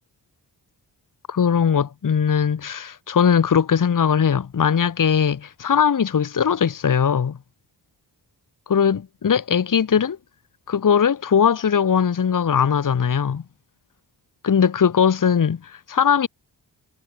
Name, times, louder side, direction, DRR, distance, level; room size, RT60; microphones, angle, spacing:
voice 1, 1.3-7.4 8.7-10.2 10.7-13.4 14.4-16.3, left 7 dB, 50° left, 1.1 m, -20 dB
wide cardioid pair, 90°, 42 cm